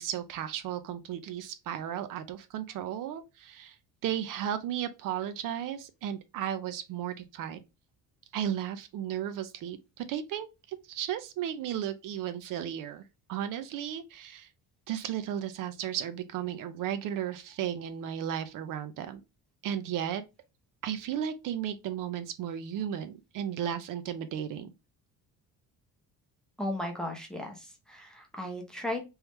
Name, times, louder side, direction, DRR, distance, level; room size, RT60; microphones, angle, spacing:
voice 1, 0.0-3.8 4.0-7.6 8.3-13.0 13.3-14.5 14.9-19.2 19.6-20.2 20.8-24.7, right 10 dB, 65° right, 0.5 m, -34 dB
voice 2, 26.6-29.0, left 1 dB, ahead, 0.6 m, -36 dB
3.4 x 3.1 x 3.0 m
cardioid pair, 175°, 36 cm